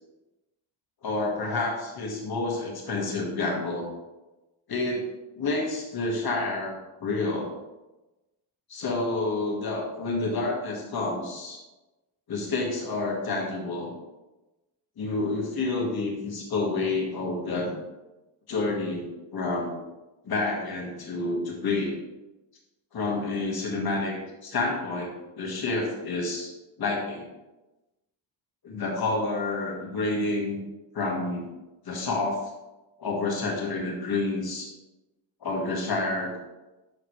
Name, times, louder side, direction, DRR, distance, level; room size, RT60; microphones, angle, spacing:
voice 1, 1.0-3.9 4.7-5.1 5.4-7.5 8.7-11.6 12.3-13.9 15.0-17.8 18.5-19.8 20.2-22.0 22.9-26.5 26.8-27.2 28.6-30.6 30.9-31.5 31.9-32.4 33.0-34.7 35.4-36.4, left 2 dB, 45° left, 0 dB, 2.0 m, -29 dB
11.0 x 3.9 x 3.3 m, 1.1 s
cardioid pair, 110°, 49 cm